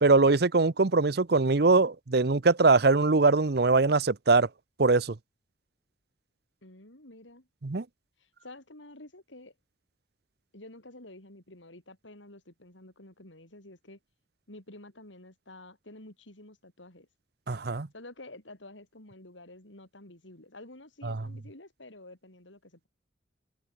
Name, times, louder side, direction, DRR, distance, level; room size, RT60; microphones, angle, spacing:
voice 1, 0.0-4.5 4.8-5.2 7.6-7.8 17.5-17.9 21.0-21.2, right 3 dB, 55° right, 0.8 m, -22 dB
voice 2, 6.6-7.5 8.2-9.5 10.5-14.0 14.5-17.1 17.9-22.9, left 2 dB, 85° left, 5.8 m, -50 dB
head